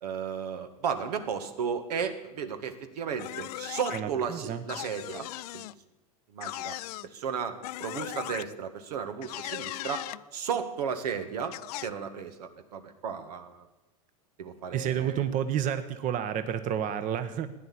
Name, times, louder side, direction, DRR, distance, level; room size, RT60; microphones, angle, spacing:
voice 1, 0.0-5.3 5.5-5.7 6.3-6.7 7.0-10.1 10.3-13.7 14.4-15.2, right 7 dB, 85° right, 8 dB, 1.8 m, -34 dB
sound 1, 3.2-4.0 4.7-5.7 6.4-7.1 7.6-8.5 9.2-10.2 11.5-11.9, left 17 dB, 75° left, 0.5 m, -38 dB
voice 2, 3.9-4.6 14.7-17.5, right 9 dB, 40° right, 11 dB, 1.1 m, -30 dB
15.5 x 10.0 x 8.6 m, 1.1 s
supercardioid pair, 110°, 20 cm